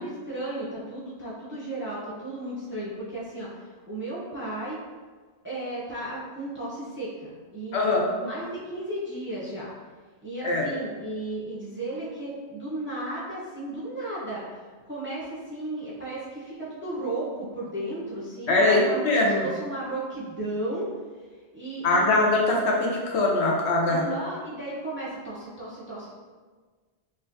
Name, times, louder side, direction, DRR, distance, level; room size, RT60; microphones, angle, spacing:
voice 1, 0.0-4.8 5.4-9.7 10.2-14.6 14.9-20.9 21.5-22.2 23.9-26.2, right 1 dB, 15° right, -8 dB, 0.5 m, -34 dB
voice 2, 7.7-8.1 10.4-10.7 18.5-19.5 21.8-24.0, left 2 dB, 75° left, -1 dB, 0.9 m, -22 dB
4.0 x 2.5 x 2.6 m, 1.4 s
omnidirectional pair, 1.1 m